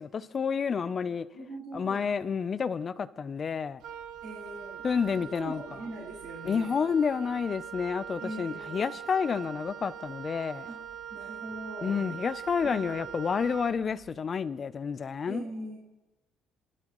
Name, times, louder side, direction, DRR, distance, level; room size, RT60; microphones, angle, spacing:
voice 1, 0.0-1.3 1.7-3.8 4.8-5.6 6.4-10.7 11.8-15.4, left 6 dB, 35° left, 0.5 m, -30 dB
voice 2, 1.3-2.1 4.2-4.8 5.2-6.7 8.2-8.9 10.7-10.8 11.1-12.0 12.7-13.1 15.3-15.8, right 1 dB, 90° right, 4.2 m, -41 dB
Wind instrument woodwind instrument, 3.8-14.2, right 9 dB, 70° right, 0.8 m, -42 dB
25.0 x 12.0 x 3.0 m
cardioid pair, 135°, 0 cm